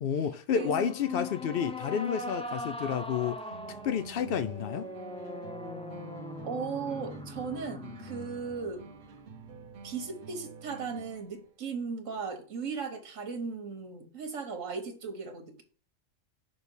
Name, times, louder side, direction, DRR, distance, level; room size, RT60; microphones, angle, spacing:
voice 1, 0.0-3.4 3.8-4.9, left 8 dB, 60° left, 0.6 m, -30 dB
voice 2, 0.5-0.9 6.4-8.8 9.8-15.6, right 5 dB, 70° right, 1.5 m, -37 dB
sound 1, 0.6-9.9, left 1 dB, 10° left, 0.3 m, -40 dB
sound 2, 3.5-11.5, right 4 dB, 55° right, 0.8 m, -49 dB
6.1 x 3.5 x 5.3 m
omnidirectional pair, 1.3 m